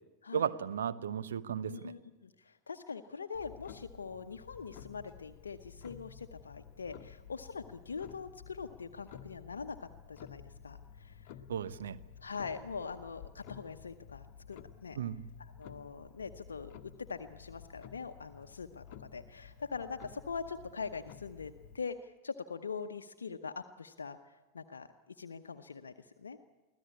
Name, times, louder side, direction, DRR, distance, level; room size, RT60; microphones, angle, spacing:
voice 1, 0.3-1.9 11.5-12.0 15.0-15.2, right 8 dB, 65° right, 13 dB, 0.9 m, -35 dB
voice 2, 1.6-11.3 12.2-15.0 15.4-24.9 25.2-26.4, left 5 dB, 70° left, 7 dB, 0.8 m, -43 dB
Clock, 3.3-21.8, left 8 dB, 45° left, 1.1 m, -53 dB
24.5 x 16.0 x 8.5 m, 1.2 s
figure-of-eight pair, 90°, 0 cm